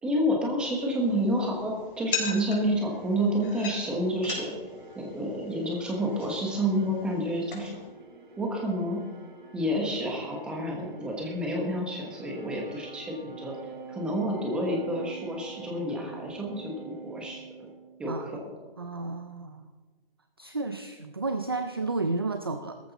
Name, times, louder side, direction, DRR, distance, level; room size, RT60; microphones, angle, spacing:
voice 1, 0.0-4.5 4.9-7.7 8.4-9.0 9.5-13.5 13.9-17.7 18.0-18.5, equal, 5° right, -1 dB, 1.1 m, -29 dB
sound 1, 0.6-7.9, left 5 dB, 55° left, 4.6 m, -40 dB
sound 2, 2.1-18.4, right 4 dB, 55° right, 3.3 m, -47 dB
voice 2, 18.8-19.7 20.4-22.8, right 3 dB, 25° right, 8 dB, 0.4 m, -32 dB
16.5 x 14.0 x 4.1 m, 1.3 s
hypercardioid pair, 180°, 30 cm